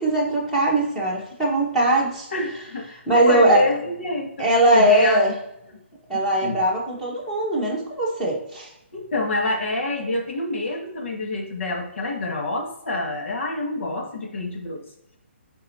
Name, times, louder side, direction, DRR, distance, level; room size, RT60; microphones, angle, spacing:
voice 1, 0.0-2.3 3.1-3.6 4.4-5.3 6.1-8.7, right 1 dB, 5° left, -5 dB, 1.5 m, -20 dB
voice 2, 2.3-3.0 3.3-4.5 4.7-5.2 6.1-6.6 8.9-14.8, left 2 dB, 65° left, 1 dB, 1.8 m, -27 dB
10.5 x 4.6 x 2.8 m, 0.82 s
hypercardioid pair, 165°, 7 cm